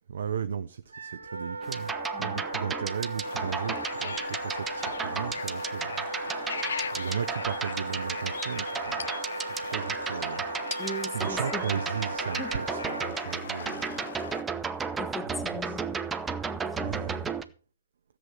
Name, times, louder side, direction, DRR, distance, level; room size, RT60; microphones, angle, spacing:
voice 1, 0.1-1.9 2.2-6.1 6.9-10.4 11.1-13.9 15.3-15.8 16.8-17.3, right 7 dB, 60° right, 0.7 m, -36 dB
Wind instrument woodwind instrument, 0.9-13.1, right 3 dB, 80° right, 1.3 m, -37 dB
sound 1, 1.6-17.4, right 5 dB, 10° right, 0.8 m, -34 dB
voice 2, 2.1-2.4 10.8-11.8 12.4-12.6 15.0-16.0 16.3-17.0, left 1 dB, 5° left, 1.6 m, -39 dB
sound 2, 3.2-14.4, left 6 dB, 65° left, 0.7 m, -39 dB
13.5 x 7.8 x 5.7 m
figure-of-eight pair, 125°, 0 cm